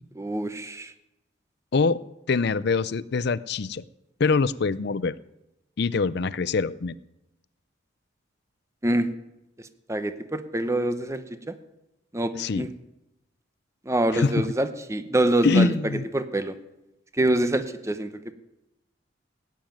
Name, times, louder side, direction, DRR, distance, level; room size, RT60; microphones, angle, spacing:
voice 1, 0.2-0.9 8.8-9.1 9.9-11.5 12.1-12.7 13.9-15.7 16.1-16.5 17.2-18.1, right 1 dB, 15° right, 10 dB, 0.9 m, -25 dB
voice 2, 2.3-3.8 4.2-5.2 5.8-7.0 12.3-12.7 14.1-14.5 15.4-16.1, left 4 dB, 60° left, 18 dB, 0.5 m, -24 dB
16.5 x 9.3 x 9.1 m, 0.92 s
head